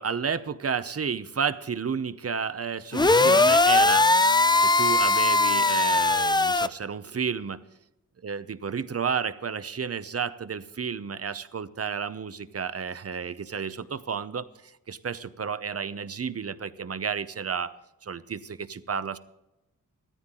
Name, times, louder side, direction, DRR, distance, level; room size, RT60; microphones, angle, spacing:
voice 1, 0.0-4.1 4.6-7.6 8.2-19.2, right 6 dB, 45° right, 14 dB, 0.7 m, -31 dB
sound 1, 2.9-6.7, left 3 dB, 15° left, 0.4 m, -20 dB
16.0 x 13.5 x 3.8 m, 0.94 s
wide cardioid pair, 100°, 34 cm